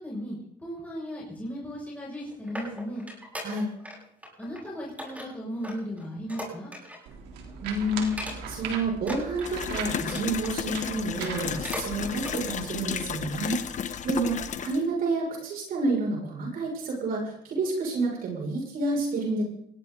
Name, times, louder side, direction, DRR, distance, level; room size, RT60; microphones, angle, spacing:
voice 1, 0.0-3.1 4.4-6.7, equal, 10° left, -5 dB, 6.6 m, -36 dB
sound 1, 2.0-4.0 4.2-4.6 5.0-7.1 7.5-7.6 8.0-8.7 9.0-10.6 11.1-11.9 12.2-12.4 12.9-13.0, equal, 10° right, 7.7 m, -39 dB
sound 2, 7.1-12.4, right 5 dB, 90° right, 3.5 m, -39 dB
voice 2, 7.6-13.6 14.0-19.4, right 2 dB, 60° right, -1 dB, 6.4 m, -29 dB
sound 3, 9.5-14.8, left 8 dB, 45° left, 1.3 m, -33 dB
20.0 x 16.5 x 4.0 m, 0.70 s
cardioid pair, 110°, 17 cm